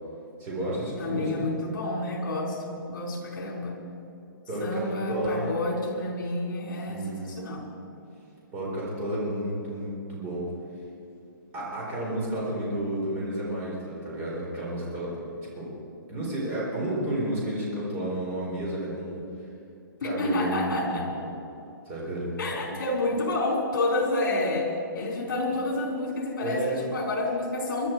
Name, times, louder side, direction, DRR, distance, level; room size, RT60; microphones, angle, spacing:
voice 1, 0.4-1.3 4.5-5.5 6.9-7.3 8.5-10.5 11.5-15.2 15.5-15.7 16.1-19.2 20.0-21.3 21.8-22.4 22.6-22.8 25.5-25.6 26.4-26.8, right 1 dB, 20° right, -5 dB, 4.1 m, -31 dB
voice 2, 1.0-3.8 4.6-7.7 20.0-21.1 22.4-27.9, left 2 dB, 60° left, -1 dB, 4.6 m, -29 dB
22.0 x 12.5 x 4.6 m, 2.7 s
hypercardioid pair, 170°, 11 cm